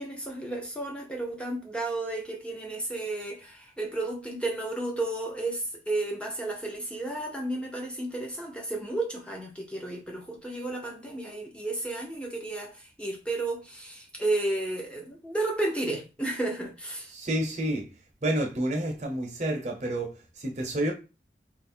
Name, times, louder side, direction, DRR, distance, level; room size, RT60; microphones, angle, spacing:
voice 1, 0.0-17.1, right 2 dB, 5° left, 0.8 m, -32 dB
voice 2, 17.1-17.9 18.2-20.9, right 1 dB, 40° right, 0.9 m, -29 dB
3.1 x 2.6 x 4.3 m
head